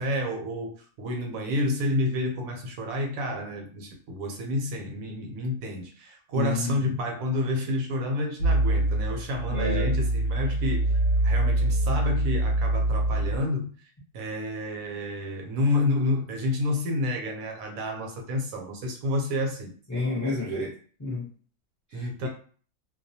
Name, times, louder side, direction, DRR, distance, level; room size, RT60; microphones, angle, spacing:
voice 1, 0.0-10.9 11.2-13.7 14.1-19.7 21.9-22.3, left 1 dB, 75° right, 2 dB, 1.0 m, -29 dB
voice 2, 6.3-7.0 9.5-10.0 19.9-21.3 21.9-22.3, left 2 dB, 20° left, -6 dB, 0.5 m, -31 dB
sound 1, 8.4-13.4, right 1 dB, 65° left, 0.7 m, -24 dB
2.3 x 2.1 x 2.6 m, 0.43 s
omnidirectional pair, 1.5 m